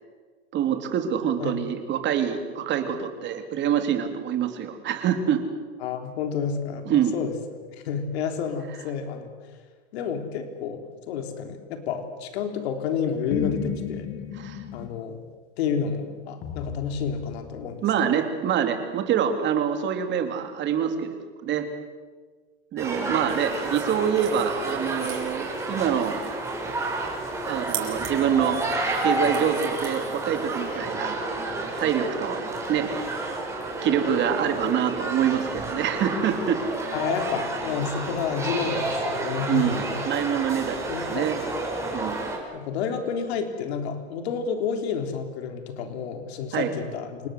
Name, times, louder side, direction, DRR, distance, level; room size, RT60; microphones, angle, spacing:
voice 1, 0.5-5.4 6.8-7.1 14.3-14.6 17.8-21.7 22.7-26.2 27.4-28.6 29.0-31.2 31.8-32.4 32.7-32.9 33.8-36.6 39.5-41.4 41.9-42.2 46.5-46.7, right 8 dB, 35° right, 6 dB, 3.3 m, -25 dB
voice 2, 5.8-6.9 7.1-7.3 7.7-9.4 9.9-14.1 14.7-15.2 15.6-17.9 36.9-40.0 40.9-41.3 42.5-47.3, left 6 dB, 75° left, 5 dB, 3.7 m, -30 dB
sound 1, 13.3-15.0 16.4-17.7, left 9 dB, 40° left, 2.2 m, -34 dB
sound 2, 22.8-42.4, right 2 dB, 10° right, 5.6 m, -30 dB
sound 3, 23.3-30.8, right 13 dB, 60° right, 6.5 m, -42 dB
28.5 x 19.0 x 8.0 m, 1.4 s
supercardioid pair, 140°, 33 cm